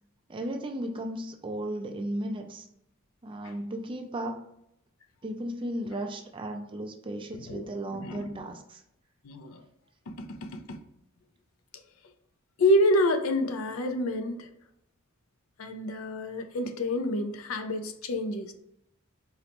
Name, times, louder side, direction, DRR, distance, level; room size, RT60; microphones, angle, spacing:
voice 1, 0.3-2.7 3.2-4.4 5.2-8.8, right 1 dB, 25° right, 0.3 m, -35 dB
voice 2, 7.3-8.3 9.2-9.6 10.2-10.8 12.6-14.5 15.6-18.5, left 1 dB, 75° left, 0.4 m, -28 dB
3.9 x 2.1 x 2.9 m
head